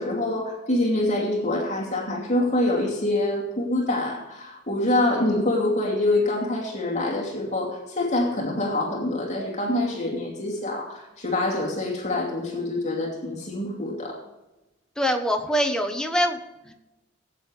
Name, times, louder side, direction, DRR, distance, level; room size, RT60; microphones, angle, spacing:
voice 1, 0.0-14.2, left 1 dB, 40° left, -2 dB, 2.6 m, -25 dB
voice 2, 15.0-16.4 16.7-16.8, equal, 5° left, 4 dB, 1.0 m, -24 dB
18.0 x 9.0 x 3.3 m, 1.0 s
head